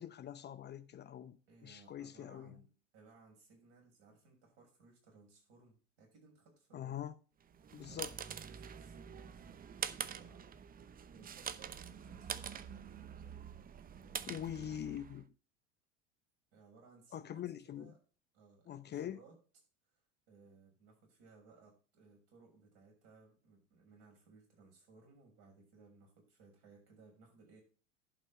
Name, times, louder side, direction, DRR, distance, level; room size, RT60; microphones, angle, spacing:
voice 1, 0.0-2.6 6.7-7.1 7.7-8.1 14.3-15.3 17.1-17.9 18.7-19.2, left 10 dB, 30° left, 0.7 m, -44 dB
voice 2, 1.5-7.0 7.8-9.6 9.9-10.6 11.1-13.1 13.9-14.8 16.5-17.9 18.3-19.4 19.9-27.6, right 4 dB, 60° right, 6.7 m, -62 dB
sound 1, 7.5-15.2, right 8 dB, 25° right, 0.7 m, -45 dB
11.5 x 5.5 x 6.0 m
hypercardioid pair, 80°, 36 cm